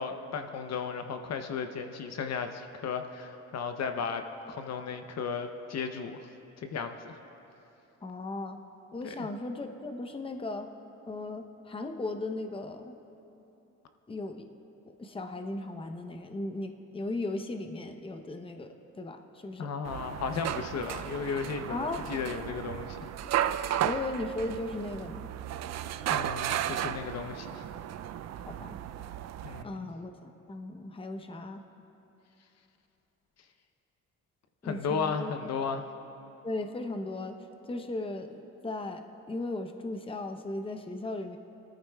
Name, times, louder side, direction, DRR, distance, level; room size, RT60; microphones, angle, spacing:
voice 1, 0.0-6.2 6.6-7.1 9.0-9.3 19.6-23.1 26.1-27.6 29.4-29.9 34.6-35.8, left 5 dB, 60° left, 7 dB, 0.8 m, -35 dB
voice 2, 8.0-8.6 8.9-10.7 11.1-12.9 14.1-14.4 15.0-18.7 19.0-19.7 21.7-22.0 23.8-25.3 28.4-28.8 29.6-31.6 34.6-35.3 36.4-37.3 37.7-39.0 39.3-41.4, left 2 dB, 20° left, 6 dB, 0.7 m, -36 dB
sound 1, 19.8-29.6, right 11 dB, 60° right, 0.4 m, -34 dB
19.5 x 14.0 x 2.3 m, 3.0 s
cardioid pair, 90°, 30 cm